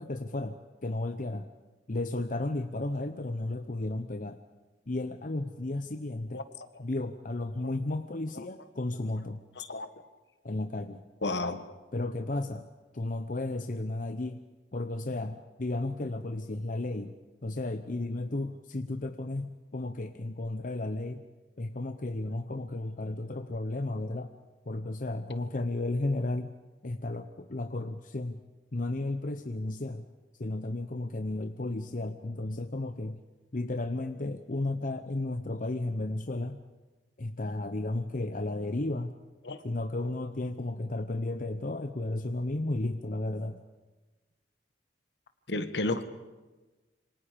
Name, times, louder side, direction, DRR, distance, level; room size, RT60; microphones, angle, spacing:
voice 1, 0.0-1.5 1.9-4.4 4.9-6.4 6.8-9.4 10.4-11.0 11.9-12.7 12.9-14.4 14.7-17.1 17.4-21.2 21.6-24.3 24.7-26.5 26.8-28.4 28.7-30.0 30.4-33.2 33.5-36.6 37.2-39.1 39.6-43.6, left 2 dB, 50° left, 0.8 m, -33 dB
voice 2, 9.5-9.9 11.2-11.6 39.4-39.6 45.5-46.0, left 2 dB, 70° left, 1.5 m, -32 dB
27.5 x 25.0 x 5.2 m
head